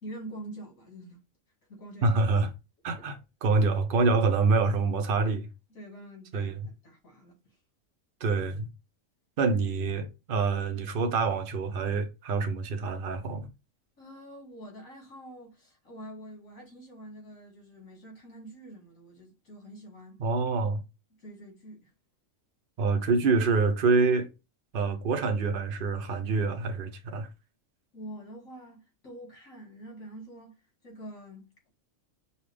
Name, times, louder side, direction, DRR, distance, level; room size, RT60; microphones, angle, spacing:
voice 1, 0.0-1.2 1.7-2.2 5.7-7.6 14.0-20.2 21.2-21.9 27.9-31.7, right 1 dB, 85° left, 2.1 m, -46 dB
voice 2, 2.0-2.5 2.8-5.5 6.3-6.6 8.2-8.7 9.4-13.5 20.2-20.8 22.8-24.3 24.7-27.3, right 4 dB, 50° right, 0.8 m, -26 dB
5.5 x 2.5 x 3.3 m
omnidirectional pair, 1.4 m